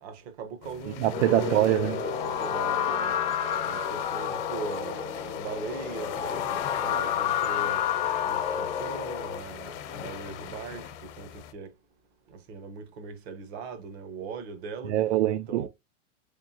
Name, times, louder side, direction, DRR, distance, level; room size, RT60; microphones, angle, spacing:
voice 1, 0.0-3.2 3.6-6.6 6.8-7.8 8.2-11.7 12.3-14.9 15.5-15.7, right 5 dB, 60° right, 1.1 m, -40 dB
sound 1, 0.6-11.5, left 10 dB, 65° left, 0.8 m, -41 dB
voice 2, 1.0-2.0 14.8-15.7, right 13 dB, 75° right, 0.5 m, -24 dB
sound 2, 1.1-9.4, left 9 dB, 20° left, 0.4 m, -30 dB
3.5 x 3.5 x 2.8 m
supercardioid pair, 140°, 36 cm